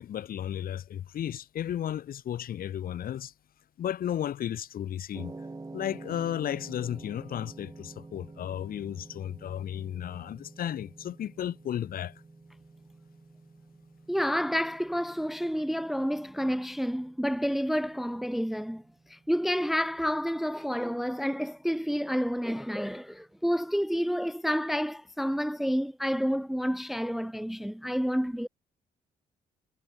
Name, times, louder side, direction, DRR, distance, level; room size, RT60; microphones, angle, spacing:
voice 1, 0.0-3.3 3.8-5.3 5.7-12.1, left 10 dB, 70° left, 4.8 m, -34 dB
sound 1, 5.1-23.4, right 3 dB, 20° right, 4.4 m, -50 dB
voice 2, 14.1-18.8 19.1-28.5, equal, ahead, 0.6 m, -29 dB
supercardioid pair, 70°, 16 cm